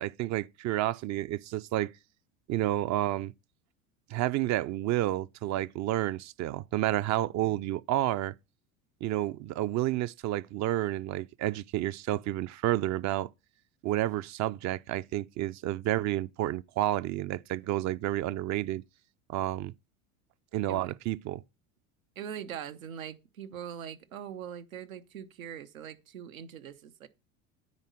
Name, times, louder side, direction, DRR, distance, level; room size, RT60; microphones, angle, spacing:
voice 1, 0.0-1.9 2.5-3.3 4.1-8.3 9.0-13.3 13.8-18.8 19.3-19.7 20.5-21.4, right 14 dB, 45° right, 0.5 m, -30 dB
voice 2, 22.2-27.1, right 9 dB, 90° right, 1.0 m, -42 dB
9.7 x 4.2 x 7.4 m
hypercardioid pair, 80°, 40 cm